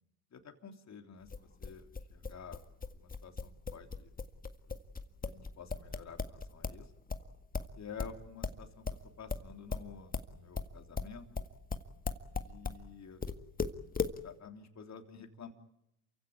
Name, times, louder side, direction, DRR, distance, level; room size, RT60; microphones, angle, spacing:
voice 1, 0.3-2.6 2.9-4.1 4.7-4.8 5.2-6.9 7.8-11.3 12.4-13.2 14.2-15.5, left 6 dB, 35° left, 5 dB, 3.4 m, -50 dB
sound 1, 1.3-6.8 7.1-12.8 13.2-14.2, left 4 dB, 20° left, 1.8 m, -37 dB
28.5 x 16.0 x 9.4 m, 0.82 s
supercardioid pair, 80°, 44 cm